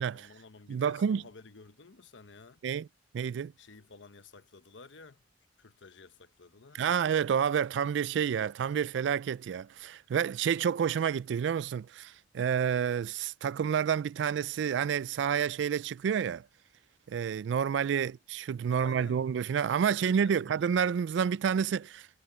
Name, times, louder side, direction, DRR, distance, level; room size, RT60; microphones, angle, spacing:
voice 1, 0.0-2.6 3.6-5.2 5.6-7.0 18.7-19.2 19.9-20.8, left 4 dB, 85° left, 1.0 m, -52 dB
voice 2, 0.7-1.2 2.6-2.9 3.1-3.5 6.7-16.5 17.1-22.1, right 7 dB, 75° right, 0.3 m, -29 dB
head